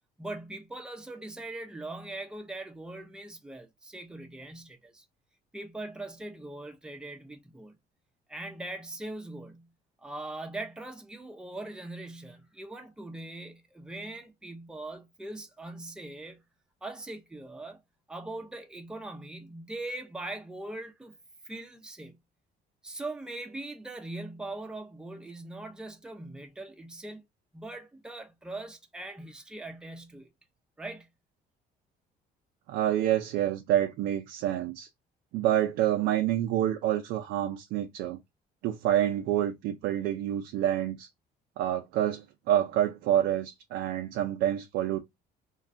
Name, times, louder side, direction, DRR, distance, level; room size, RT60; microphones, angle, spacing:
voice 1, 0.2-5.0 5.5-7.7 8.3-9.7 10.0-16.4 16.8-17.8 18.1-21.2 21.5-22.2 22.8-27.2 27.5-30.3 30.8-31.1, right 2 dB, 5° right, 0.5 m, -41 dB
voice 2, 32.7-34.9 35.3-38.2 38.6-41.1 41.6-45.0, right 12 dB, 85° right, 0.4 m, -27 dB
3.1 x 2.2 x 2.5 m
cardioid pair, 110°, 17 cm